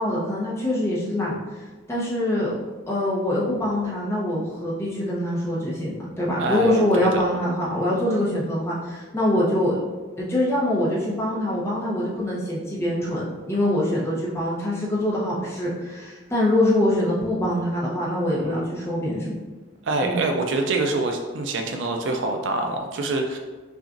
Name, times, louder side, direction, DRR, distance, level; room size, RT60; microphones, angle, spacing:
voice 1, 0.0-1.4 1.9-2.5 2.9-9.8 10.2-19.4 20.0-20.2, left 1 dB, 15° left, -7 dB, 0.8 m, -24 dB
voice 2, 6.4-7.2 18.4-18.6 19.8-23.4, right 2 dB, 60° right, 3 dB, 0.4 m, -25 dB
5.8 x 2.4 x 2.6 m, 1.3 s
head